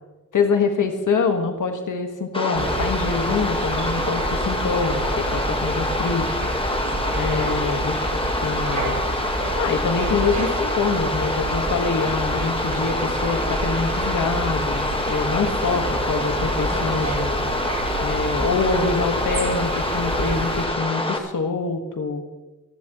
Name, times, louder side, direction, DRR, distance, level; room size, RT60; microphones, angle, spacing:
voice 1, 0.3-6.4 7.1-9.0 9.6-17.4 18.0-22.2, left 4 dB, 85° left, 4 dB, 1.7 m, -25 dB
sound 1, 2.3-21.2, left 1 dB, 15° left, 1.6 m, -26 dB
sound 2, 2.5-20.7, right 2 dB, 65° right, 4.9 m, -29 dB
27.5 x 11.5 x 3.1 m, 1.1 s
wide cardioid pair, 125°, 31 cm